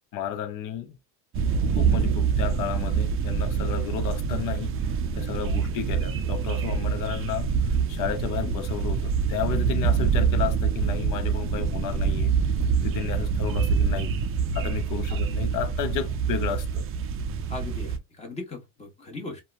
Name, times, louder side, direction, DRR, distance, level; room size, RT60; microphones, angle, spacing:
voice 1, 0.1-1.0 1.7-4.8 5.1-7.5 7.9-12.3 12.8-14.1 14.5-16.9, left 9 dB, 50° left, 0.7 m, -32 dB
sound 1, 1.3-18.0, right 6 dB, 35° right, 0.4 m, -25 dB
voice 2, 17.5-19.4, left 3 dB, 15° left, 1.2 m, -38 dB
2.7 x 2.2 x 2.4 m
cardioid pair, 130°, 40 cm